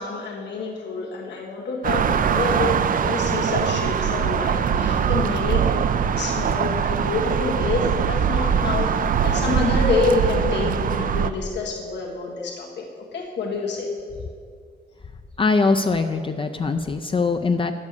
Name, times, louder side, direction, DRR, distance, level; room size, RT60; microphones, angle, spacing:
voice 1, 0.0-5.6 6.1-12.8 13.1-13.9, left 4 dB, 90° left, -1 dB, 1.5 m, -27 dB
sound 1, 1.8-11.3, right 7 dB, 55° right, 0.4 m, -22 dB
voice 2, 15.4-17.7, left 4 dB, 30° left, 7 dB, 0.4 m, -22 dB
9.4 x 7.3 x 6.6 m, 2.2 s
wide cardioid pair, 110°, 17 cm